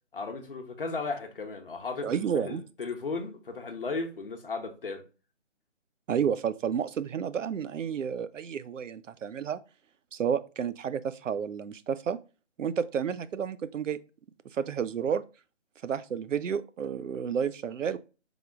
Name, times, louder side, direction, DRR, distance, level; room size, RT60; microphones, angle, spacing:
voice 1, 0.1-5.0, left 3 dB, 50° left, 0.9 m, -35 dB
voice 2, 2.0-2.6 6.1-9.6 10.1-12.2 12.6-14.0 14.5-15.2 15.8-18.0, right 7 dB, 90° right, 0.5 m, -31 dB
3.5 x 3.5 x 3.5 m
figure-of-eight pair, 170°, 36 cm